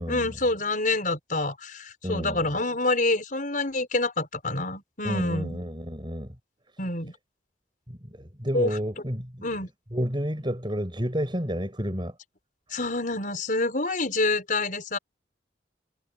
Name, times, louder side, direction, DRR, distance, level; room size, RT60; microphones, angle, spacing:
voice 1, 0.1-5.6 6.8-7.1 8.5-8.8 9.4-9.7 12.7-15.0, left 2 dB, 45° left, 5.8 m, -27 dB
voice 2, 2.0-2.4 5.0-6.4 7.9-9.4 9.9-12.1, equal, 25° right, 7.2 m, -30 dB
head